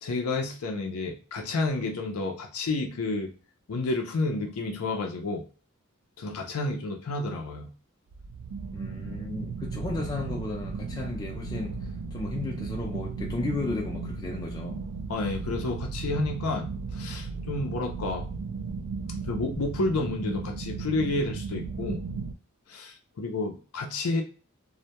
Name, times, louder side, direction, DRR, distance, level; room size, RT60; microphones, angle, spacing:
voice 1, 0.0-3.3 3.7-5.4 6.2-7.7 15.1-18.3 19.3-22.0 22.7-24.2, left 2 dB, 75° left, 0.5 m, -30 dB
sound 1, 8.1-22.3, right 4 dB, 80° right, 0.3 m, -35 dB
voice 2, 8.7-11.8 12.1-14.8, left 2 dB, 20° left, 0.4 m, -34 dB
2.1 x 2.1 x 2.8 m
head